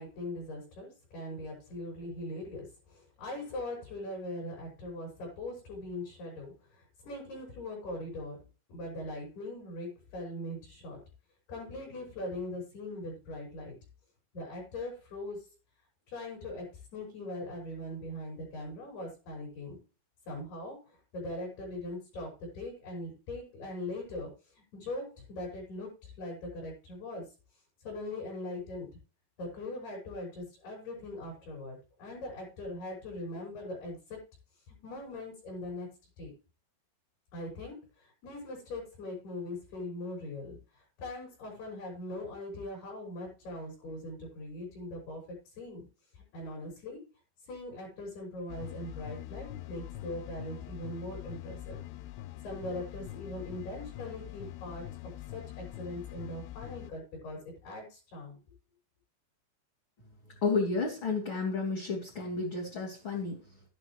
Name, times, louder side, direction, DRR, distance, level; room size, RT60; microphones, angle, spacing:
voice 1, 0.0-8.4 8.7-11.0 11.5-13.8 14.3-15.5 16.1-16.7 16.9-19.8 20.3-27.3 27.8-28.9 29.4-34.2 34.7-35.9 36.2-36.3 37.3-45.9 46.1-47.0 47.4-51.8 52.4-54.9 55.3-58.4, left 1 dB, 50° left, -2 dB, 7.4 m, -41 dB
sound 1, 48.5-56.9, left 14 dB, 90° left, 2.4 m, -44 dB
voice 2, 60.4-63.4, left 4 dB, 30° left, -4 dB, 2.6 m, -31 dB
12.5 x 11.5 x 3.1 m, 0.32 s
omnidirectional pair, 5.8 m